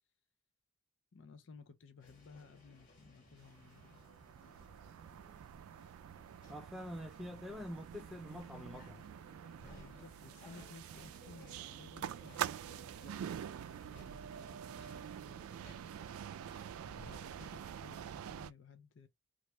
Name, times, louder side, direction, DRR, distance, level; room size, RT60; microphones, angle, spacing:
voice 1, 1.1-4.0 9.8-15.8 16.8-19.1, left 5 dB, 60° left, 0.5 m, -58 dB
sound 1, 2.0-18.0, equal, 40° left, 1.4 m, -61 dB
sound 2, 3.4-18.5, right 9 dB, 90° right, 0.3 m, -46 dB
voice 2, 6.5-9.0, left 1 dB, ahead, 0.3 m, -46 dB
3.2 x 2.4 x 2.9 m
head